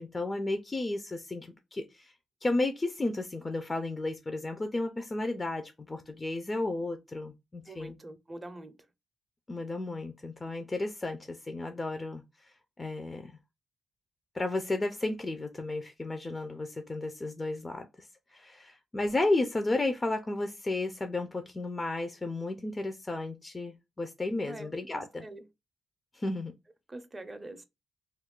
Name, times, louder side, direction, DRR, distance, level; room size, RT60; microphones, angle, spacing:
voice 1, 0.0-2.1 2.4-7.9 9.5-13.4 14.3-25.2 26.1-26.5, left 2 dB, 30° left, 0.4 m, -33 dB
voice 2, 7.7-8.7 24.5-25.5 26.9-27.6, right 2 dB, 25° right, 0.5 m, -44 dB
2.4 x 2.2 x 3.5 m
cardioid pair, 70°, 0 cm